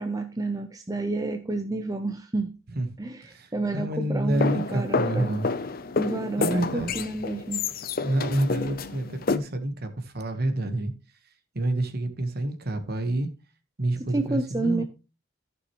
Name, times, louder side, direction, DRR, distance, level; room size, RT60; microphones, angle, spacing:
voice 1, 0.0-2.5 3.0-5.4 6.0-7.6 14.1-14.8, right 2 dB, 15° right, 6 dB, 0.6 m, -30 dB
voice 2, 3.3-5.5 6.4-6.9 8.0-10.9 11.5-13.3 13.8-14.8, right 1 dB, 45° right, 8 dB, 1.3 m, -28 dB
sound 1, 4.3-9.4, left 4 dB, 45° left, 0.6 m, -29 dB
14.5 x 6.1 x 3.1 m, 0.31 s
head